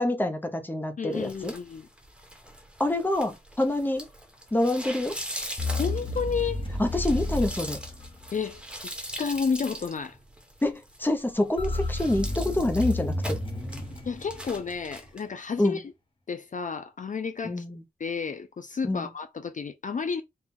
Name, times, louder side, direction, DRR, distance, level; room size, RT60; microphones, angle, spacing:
voice 1, 0.0-1.5 2.8-4.1 4.5-5.1 6.8-7.8 10.6-13.4 15.6-15.8 17.4-17.8 18.8-19.1, left 1 dB, 10° left, 0.8 m, -26 dB
voice 2, 1.0-1.9 5.8-6.6 8.3-8.6 9.2-10.2 14.1-15.8 16.3-17.6 18.0-20.2, left 5 dB, 50° left, 0.4 m, -31 dB
sound 1, 1.1-15.2, equal, 5° right, 1.1 m, -42 dB
sound 2, 5.6-8.6 11.6-15.0, left 2 dB, 30° left, 1.1 m, -31 dB
4.4 x 2.3 x 3.6 m
wide cardioid pair, 105°, 17 cm